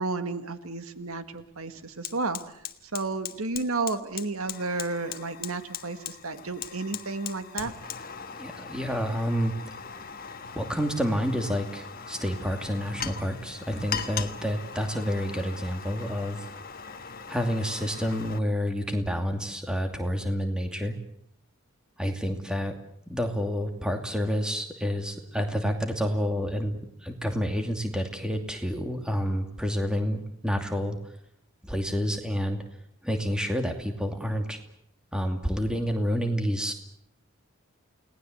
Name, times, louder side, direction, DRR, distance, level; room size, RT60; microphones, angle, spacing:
voice 1, 0.0-7.7, right 3 dB, 85° right, 9 dB, 1.9 m, -32 dB
Fire, 0.9-1.0 1.4-18.4, left 7 dB, 45° left, 1.4 m, -39 dB
voice 2, 8.4-9.5 10.5-16.4 17.3-20.9 22.0-22.7 23.1-31.0 31.6-32.6 33.0-34.6 35.1-36.7, equal, 5° right, 4 dB, 2.6 m, -29 dB
29.5 x 19.0 x 8.0 m, 0.72 s
head